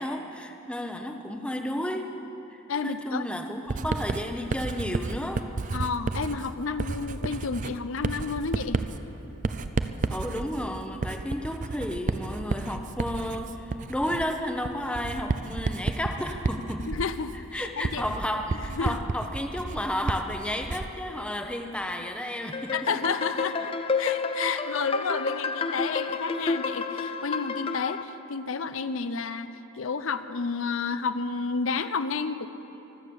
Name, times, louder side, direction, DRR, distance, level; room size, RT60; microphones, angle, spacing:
voice 1, 0.0-2.1 2.5-5.5 10.1-16.9 17.5-23.1, left 1 dB, 5° left, 4 dB, 0.8 m, -32 dB
voice 2, 2.7-3.2 5.7-8.8 16.9-18.0 18.7-19.0 22.7-32.5, left 5 dB, 75° left, 12 dB, 0.7 m, -31 dB
Writing, 3.7-21.0, right 3 dB, 35° right, 0.4 m, -32 dB
sound 1, 22.5-28.0, left 4 dB, 25° left, 0.5 m, -30 dB
24.0 x 8.2 x 7.0 m, 3.0 s
head